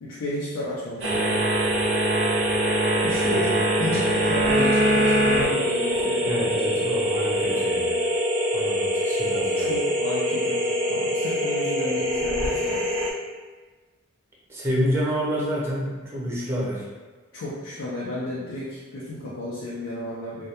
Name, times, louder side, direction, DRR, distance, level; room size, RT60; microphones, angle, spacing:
voice 1, 0.0-1.4 3.0-6.8 9.5-12.9 17.3-20.5, left 1 dB, 85° left, -7 dB, 0.4 m, -32 dB
sound 1, 1.0-13.1, equal, 65° right, 0.5 m, -23 dB
voice 2, 6.2-8.0 8.5-9.7 14.5-16.9, equal, 10° right, -7 dB, 0.5 m, -28 dB
2.2 x 2.1 x 2.7 m, 1.4 s
head